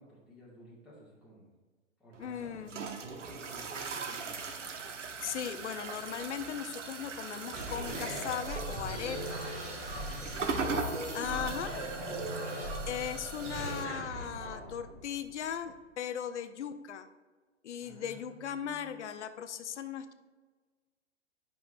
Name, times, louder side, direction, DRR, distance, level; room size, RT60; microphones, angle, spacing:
voice 1, 0.0-1.5 2.0-2.6 3.0-4.4 9.8-11.9 17.8-19.0, equal, ahead, -8 dB, 2.0 m, -53 dB
sound 1, 2.1-13.8, right 4 dB, 80° right, 0.9 m, -40 dB
voice 2, 2.2-2.8 5.2-9.4 11.1-11.7 12.9-17.1 17.6-20.1, left 8 dB, 70° left, 11 dB, 0.7 m, -38 dB
sound 2, 7.5-15.7, right 1 dB, 20° right, 1.9 m, -39 dB
9.3 x 5.8 x 2.6 m, 1.4 s
hypercardioid pair, 120°, 36 cm